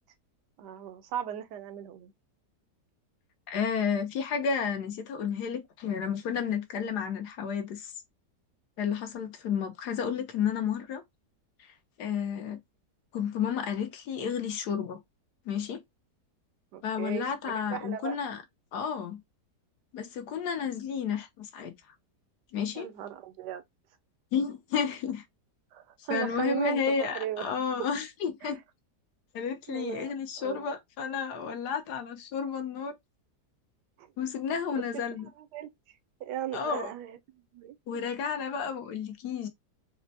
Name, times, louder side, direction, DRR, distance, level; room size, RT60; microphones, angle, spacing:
voice 1, 0.6-2.1 16.7-18.2 22.7-23.6 25.7-27.5 28.4-28.5 29.7-30.1 30.4-30.7 34.0-34.1 35.5-35.7 36.2-37.2 37.5-38.0, right 11 dB, 80° right, 1.2 m, -37 dB
voice 2, 3.5-7.9 8.8-11.0 11.6-12.6 13.1-15.0 15.5-15.8 16.8-18.4 18.7-19.2 19.9-21.7 22.5-22.9 24.3-25.2 26.1-28.6 29.3-32.9 34.2-35.3 36.5-36.9 37.9-39.5, left 7 dB, 75° left, 1.2 m, -31 dB
4.2 x 2.1 x 2.6 m
omnidirectional pair, 1.8 m